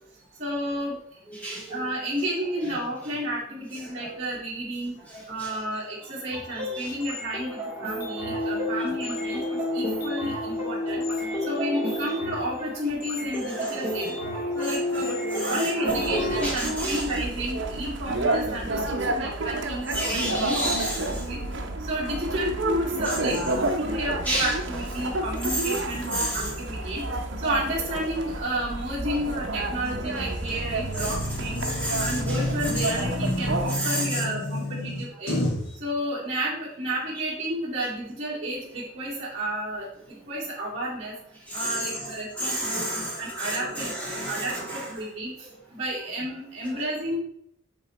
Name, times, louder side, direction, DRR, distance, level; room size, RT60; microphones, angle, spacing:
voice 1, 0.4-1.0 1.7-4.9 5.3-9.4 9.7-11.0 11.4-14.1 14.5-20.7 21.1-21.4 21.8-27.0 27.4-31.6 32.0-35.4 35.8-39.9 40.3-41.1 41.5-43.9 44.3-47.2, right 1 dB, 30° right, -8 dB, 2.3 m, -31 dB
voice 2, 1.3-1.8 4.0-4.2 5.1-5.5 6.5-6.9 8.4-8.5 9.2-9.4 11.5-12.1 13.4-17.0 19.9-21.2 23.1-23.7 24.3-24.5 25.5-25.8 26.1-26.5 27.0-27.1 31.0-31.2 31.6-33.0 33.7-34.2 41.5-42.1 42.4-44.9, right 1 dB, 5° left, -5 dB, 1.9 m, -32 dB
sound 1, 6.3-16.5, left 1 dB, 10° right, 1.9 m, -31 dB
sound 2, 15.9-33.8, right 2 dB, 65° right, 0.9 m, -30 dB
sound 3, 29.9-35.7, left 1 dB, 90° left, 1.9 m, -30 dB
8.6 x 3.9 x 4.3 m, 0.70 s
head